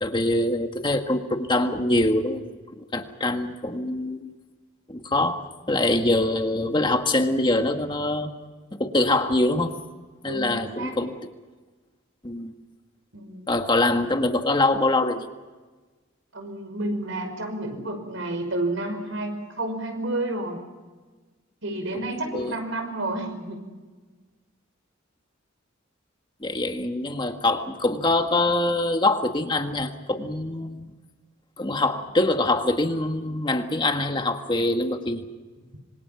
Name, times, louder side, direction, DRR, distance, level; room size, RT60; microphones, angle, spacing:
voice 1, 0.0-2.4 2.8-4.3 4.9-5.4 5.7-8.3 8.8-9.8 10.2-11.1 12.2-12.5 13.5-15.3 22.1-22.5 26.4-30.9 31.6-35.2, left 2 dB, 25° left, 5 dB, 1.7 m, -24 dB
voice 2, 10.2-11.0 13.1-13.5 16.3-20.6 21.6-23.7, right 2 dB, 70° right, 6 dB, 5.7 m, -30 dB
26.5 x 25.5 x 5.9 m, 1.3 s
head